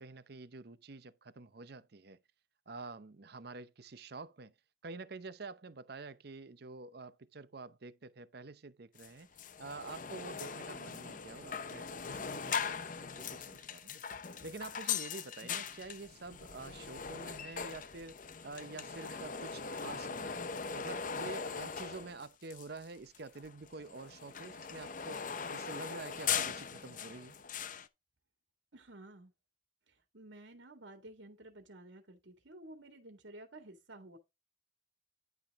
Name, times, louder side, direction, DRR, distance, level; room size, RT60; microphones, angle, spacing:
voice 1, 0.0-2.2 2.7-4.5 4.8-9.3 9.6-14.0 14.4-18.2 18.4-20.5 20.7-25.2 25.5-27.4, right 3 dB, 55° right, 0.7 m, -48 dB
sound 1, 9.0-9.1 9.4-22.8 23.1-27.9, left 6 dB, 45° left, 0.7 m, -40 dB
voice 2, 28.7-29.3 29.9-34.2, right 1 dB, 80° right, 2.0 m, -53 dB
10.5 x 5.8 x 3.6 m
head